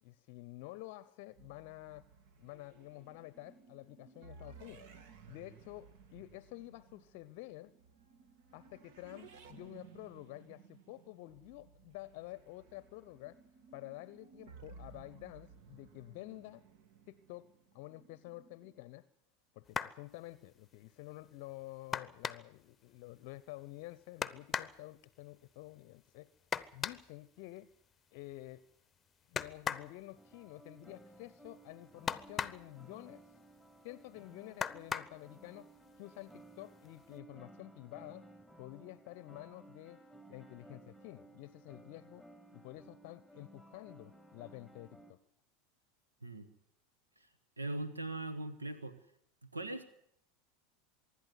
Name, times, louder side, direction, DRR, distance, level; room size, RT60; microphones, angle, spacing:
voice 1, 0.0-2.1 2.4-4.9 5.3-7.7 8.5-13.4 13.7-16.6 17.1-17.5 17.7-19.1 19.5-26.3 26.7-27.7 28.1-28.7 29.3-33.2 33.8-35.7 36.0-38.3 38.6-40.0 40.3-42.2 42.5-45.2, left 18 dB, 55° left, 0.7 m, -50 dB
sound 1, 1.4-18.8, right 5 dB, 55° right, 1.8 m, -58 dB
sound 2, 19.7-20.0 21.9-22.6 24.2-24.8 26.5-27.1 29.4-29.9 32.1-32.7 34.6-35.2 36.3-36.4 36.9-37.1, left 7 dB, 25° left, 0.9 m, -38 dB
sound 3, 30.2-45.1, right 1 dB, 10° right, 2.7 m, -58 dB
voice 2, 47.6-48.9 49.4-49.9, right 2 dB, 85° right, 1.5 m, -40 dB
25.0 x 11.5 x 9.5 m
figure-of-eight pair, 80°, 0 cm